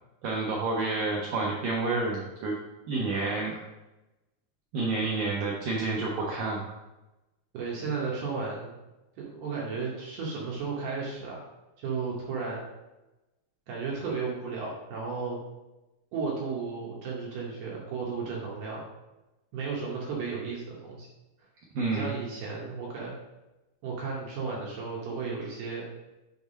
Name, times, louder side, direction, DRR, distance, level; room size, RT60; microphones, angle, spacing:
voice 1, 0.2-2.5 2.9-3.5 4.7-6.6 21.7-22.1, right 3 dB, 90° right, -2 dB, 1.9 m, -29 dB
voice 2, 7.5-8.8 9.2-11.5 11.8-12.6 13.7-15.4 16.1-18.9 19.5-21.1 21.9-23.2 23.8-25.8, right 4 dB, 70° right, -4 dB, 2.7 m, -34 dB
7.1 x 3.5 x 5.4 m, 1.0 s
omnidirectional pair, 5.1 m